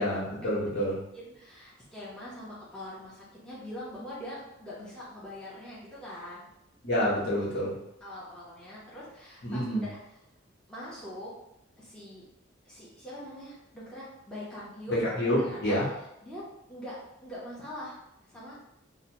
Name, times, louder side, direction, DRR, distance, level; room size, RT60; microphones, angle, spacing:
voice 1, 0.0-1.0 6.8-7.8 9.4-9.8 14.9-15.9, equal, 60° left, -7 dB, 1.0 m, -28 dB
voice 2, 1.1-6.5 8.0-10.0 10.7-11.3 11.8-12.3 12.6-15.0 15.3-15.8 16.2-16.4 16.7-18.0 18.3-18.6, left 1 dB, 5° left, -9 dB, 0.6 m, -43 dB
2.8 x 2.0 x 2.9 m, 0.82 s
head